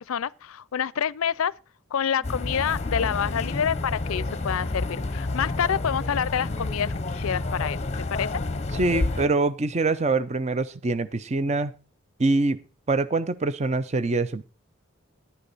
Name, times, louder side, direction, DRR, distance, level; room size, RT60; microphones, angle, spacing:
voice 1, 0.0-1.5 1.9-7.8 8.1-8.4, left 8 dB, 80° left, 0.4 m, -27 dB
sound 1, 2.2-9.3, left 2 dB, 30° left, 0.7 m, -29 dB
sound 2, 2.2-8.1, right 1 dB, 80° right, 5.2 m, -50 dB
voice 2, 8.7-11.7 12.2-12.6 12.9-14.4, right 3 dB, 30° right, 0.5 m, -24 dB
11.0 x 9.9 x 4.0 m
head